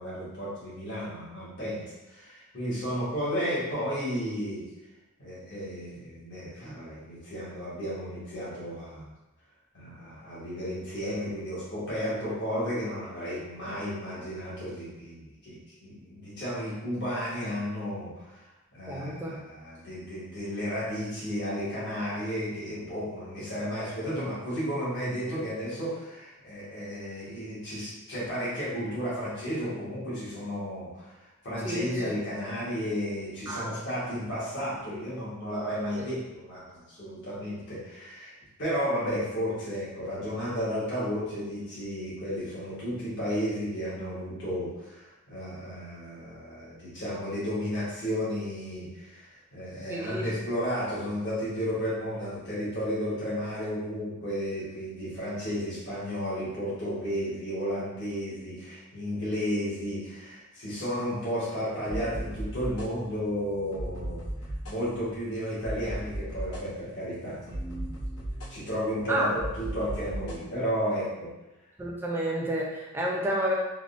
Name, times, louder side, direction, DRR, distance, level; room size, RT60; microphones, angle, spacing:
voice 1, 0.0-4.6 5.2-9.1 9.7-18.4 18.7-31.2 31.4-38.3 38.6-64.2 64.7-68.0 68.5-71.3, equal, 55° left, -9 dB, 1.1 m, -33 dB
voice 2, 18.9-19.4 31.6-32.1 33.5-33.7 49.9-50.3 69.1-69.3 71.8-73.5, right 1 dB, 10° right, -3 dB, 0.4 m, -30 dB
sound 1, 61.8-70.4, right 1 dB, 80° left, 0.9 m, -37 dB
3.4 x 2.1 x 2.4 m, 1.0 s
head